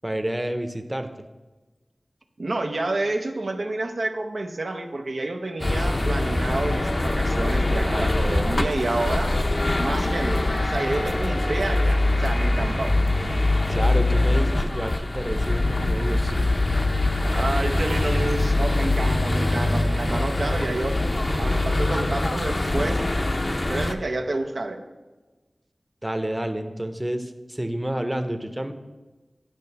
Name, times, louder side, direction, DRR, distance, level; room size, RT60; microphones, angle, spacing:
voice 1, 0.0-1.1 13.7-16.5 26.0-28.7, right 1 dB, 20° right, 7 dB, 0.7 m, -29 dB
voice 2, 2.4-9.3 9.8-12.9 17.3-21.0 21.4-23.2 23.7-24.8, right 2 dB, 80° right, 4 dB, 0.6 m, -29 dB
sound 1, 5.6-23.9, left 2 dB, 45° left, 0.6 m, -23 dB
10.5 x 5.6 x 4.1 m, 1.2 s
wide cardioid pair, 40°, 0 cm